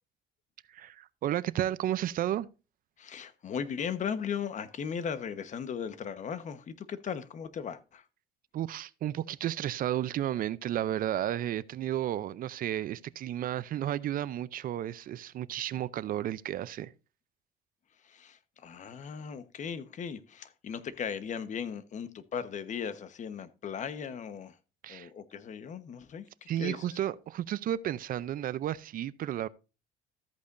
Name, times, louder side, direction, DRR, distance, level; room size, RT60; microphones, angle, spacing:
voice 1, 0.7-2.5 8.5-16.9 24.8-25.1 26.5-29.5, right 12 dB, 55° right, 0.5 m, -32 dB
voice 2, 3.0-8.0 18.0-24.6 24.9-27.0, left 7 dB, 45° left, 1.1 m, -37 dB
13.5 x 8.4 x 2.6 m
cardioid pair, 110°, 17 cm